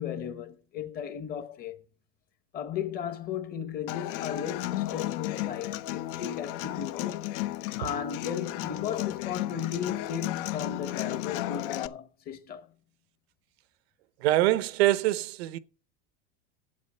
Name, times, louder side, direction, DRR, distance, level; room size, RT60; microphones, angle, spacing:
voice 1, 0.0-1.8 2.5-7.3 7.8-12.7, left 8 dB, 30° left, 1.1 m, -35 dB
Human voice / Acoustic guitar, 3.9-11.9, left 15 dB, 60° left, 0.7 m, -34 dB
voice 2, 14.2-15.6, right 16 dB, 85° right, 0.8 m, -24 dB
8.6 x 8.4 x 5.7 m
supercardioid pair, 155°, 31 cm